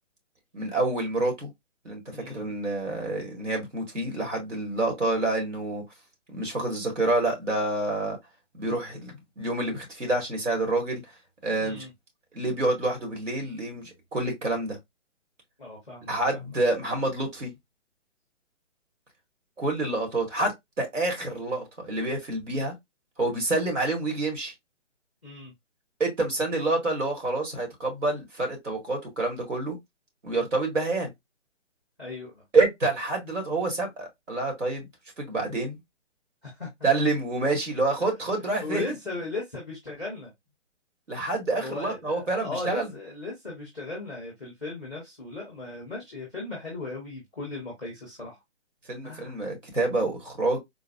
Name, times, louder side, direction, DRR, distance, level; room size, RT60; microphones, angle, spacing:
voice 1, 0.5-1.5 1.8-5.8 6.3-8.2 8.5-11.0 11.4-11.8 12.3-14.8 16.1-17.5 19.6-22.7 23.2-24.5 26.0-29.8 30.2-31.1 32.5-34.9 35.2-35.8 36.8-38.8 41.1-42.9 48.9-50.6, right 2 dB, 85° right, 2.1 m, -27 dB
voice 2, 2.1-2.5 11.6-11.9 15.6-16.1 25.2-25.5 32.0-32.4 36.4-36.7 38.6-40.3 41.6-48.4 49.0-49.4, left 3 dB, ahead, 0.6 m, -37 dB
3.8 x 2.3 x 2.6 m
hypercardioid pair, 155°, 36 cm